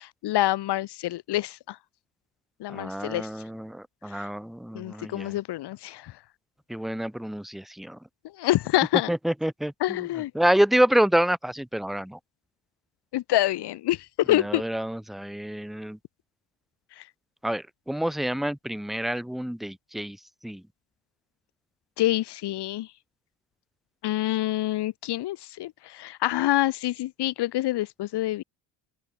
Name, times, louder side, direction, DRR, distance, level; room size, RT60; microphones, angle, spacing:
voice 1, 0.0-1.8 2.6-3.3 4.7-6.1 8.4-9.1 9.8-10.3 13.1-14.6 17.0-17.1 22.0-22.9 24.0-28.4, left 15 dB, 55° left, 1.5 m, -26 dB
voice 2, 2.7-5.4 6.7-8.0 9.1-10.1 10.3-12.2 14.3-16.0 17.4-20.2 20.4-20.6, right 1 dB, ahead, 0.4 m, -27 dB
open air
supercardioid pair, 95°, 47 cm